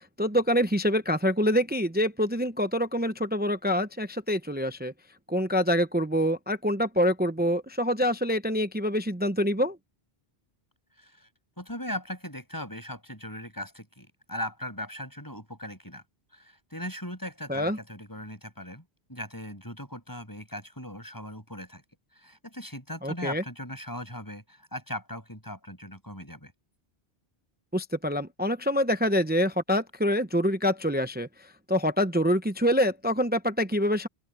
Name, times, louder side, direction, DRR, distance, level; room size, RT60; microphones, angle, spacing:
voice 1, 0.2-4.9 5.3-9.8 17.5-17.8 23.0-23.4 27.7-31.3 31.7-34.1, equal, 10° right, 0.7 m, -26 dB
voice 2, 11.0-11.3 11.6-16.0 16.3-18.8 19.1-21.8 22.2-26.5, left 1 dB, 20° left, 7.8 m, -39 dB
open air
omnidirectional pair, 1.0 m